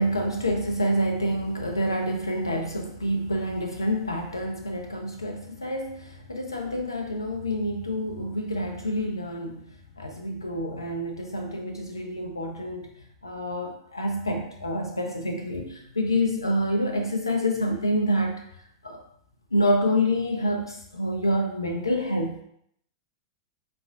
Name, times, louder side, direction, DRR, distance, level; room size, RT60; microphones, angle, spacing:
voice 1, 0.0-9.7 10.0-12.9 13.2-18.4 18.8-19.0 19.5-22.4, equal, 85° left, 3 dB, 0.4 m, -27 dB
4.1 x 3.3 x 2.3 m, 0.69 s
figure-of-eight pair, 100°, 2 cm